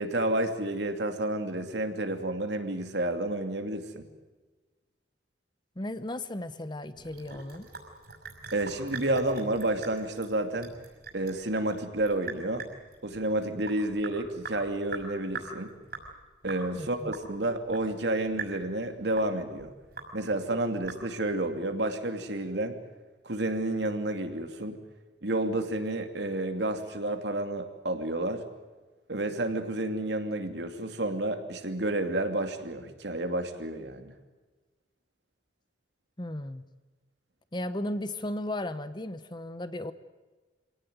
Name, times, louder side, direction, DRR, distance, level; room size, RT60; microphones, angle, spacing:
voice 1, 0.0-4.1 8.5-10.7 11.1-12.6 13.0-15.7 16.4-19.7 20.1-22.8 23.2-24.8 25.2-28.4 29.1-34.1, right 1 dB, 75° right, 6 dB, 2.6 m, -30 dB
voice 2, 5.8-7.7 16.7-17.1 36.2-36.6 37.5-39.9, left 1 dB, 25° left, 12 dB, 1.0 m, -35 dB
Sink (filling or washing) / Drip, 6.9-21.4, right 4 dB, 55° right, 5.9 m, -43 dB
26.0 x 18.0 x 9.4 m, 1.3 s
head